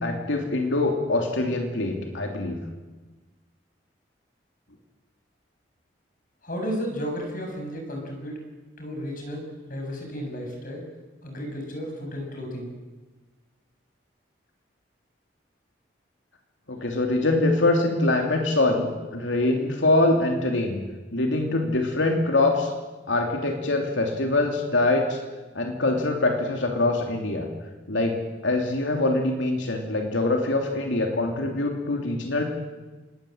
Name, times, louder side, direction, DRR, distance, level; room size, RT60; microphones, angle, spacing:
voice 1, 0.0-2.6 16.7-20.8 21.1-22.7 23.1-25.2 25.5-27.5 27.9-32.4, left 2 dB, 80° left, 2 dB, 2.9 m, -24 dB
voice 2, 6.4-8.4 8.8-10.8 11.2-12.7, equal, 45° left, 2 dB, 6.9 m, -33 dB
27.0 x 20.5 x 7.9 m, 1.2 s
head